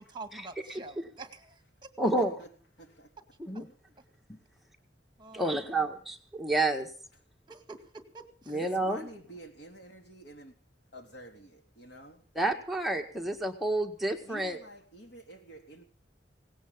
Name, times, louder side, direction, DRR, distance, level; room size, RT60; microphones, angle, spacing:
voice 1, 0.0-1.9 5.2-5.6 7.5-8.5, right 3 dB, 25° right, 2.0 m, -47 dB
voice 2, 0.7-1.0 2.0-2.4 3.4-3.7 4.3-4.4 5.3-6.9 8.5-9.1 12.3-14.6, right 2 dB, ahead, 1.8 m, -30 dB
voice 3, 2.2-2.5 2.8-3.1 5.3-5.9 8.5-10.6 10.9-12.2 14.2-15.8, right 1 dB, 75° left, 3.6 m, -49 dB
18.0 x 17.0 x 3.9 m
head